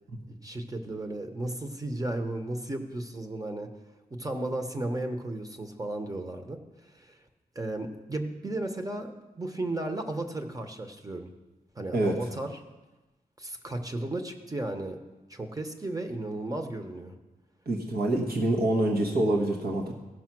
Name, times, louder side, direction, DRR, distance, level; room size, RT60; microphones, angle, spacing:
voice 1, 0.4-3.7 4.1-6.6 6.9-7.2 7.5-11.3 11.8-12.6 13.4-15.0 15.3-17.1, right 2 dB, 20° right, 5 dB, 1.0 m, -34 dB
voice 2, 17.7-19.9, right 1 dB, 75° right, 0 dB, 1.4 m, -26 dB
15.5 x 5.5 x 6.1 m, 1.1 s
wide cardioid pair, 110°, 16 cm